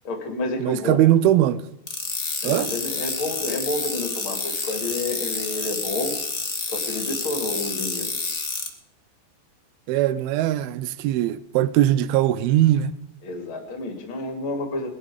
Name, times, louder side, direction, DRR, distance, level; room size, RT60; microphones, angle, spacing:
voice 1, 0.0-1.1 2.4-6.1 6.7-8.2 13.2-14.9, left 2 dB, 35° left, 3.0 m, -30 dB
voice 2, 0.6-1.6 2.4-2.7 9.9-12.9, right 13 dB, 80° right, 2.2 m, -20 dB
sound 1, 1.9-8.7, left 4 dB, 75° left, 0.7 m, -29 dB
21.5 x 11.0 x 5.0 m
omnidirectional pair, 5.0 m